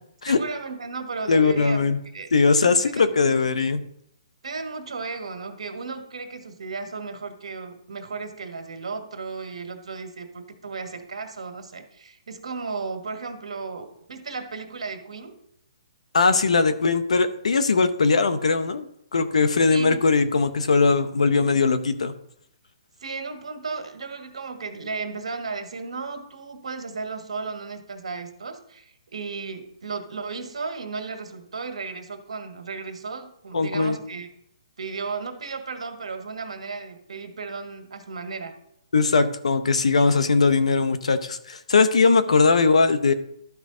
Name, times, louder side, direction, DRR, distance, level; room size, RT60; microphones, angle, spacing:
voice 1, 0.3-1.8 2.0-2.3 2.6-3.1 4.4-15.4 19.7-20.1 23.0-34.3 34.8-38.5 40.0-40.1 42.3-42.4, right 4 dB, 75° right, 6 dB, 1.5 m, -35 dB
voice 2, 1.3-2.0 2.3-3.8 16.1-22.1 33.5-34.0 38.9-43.1, left 4 dB, 80° left, 11 dB, 0.9 m, -20 dB
12.0 x 4.7 x 3.8 m, 0.76 s
hypercardioid pair, 150°, 3 cm